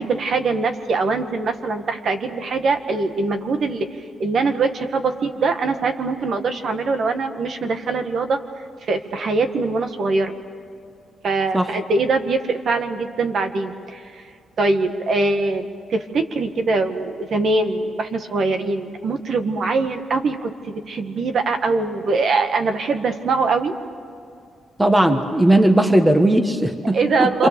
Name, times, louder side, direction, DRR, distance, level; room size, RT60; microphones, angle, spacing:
voice 1, 0.0-3.9 4.2-8.4 8.9-10.3 11.2-14.2 14.6-23.7 26.9-27.5, right 3 dB, 55° right, 7 dB, 1.8 m, -22 dB
voice 2, 24.8-27.5, right 1 dB, 10° right, 7 dB, 1.4 m, -17 dB
28.0 x 26.5 x 7.0 m, 2.3 s
cardioid pair, 130°, 0 cm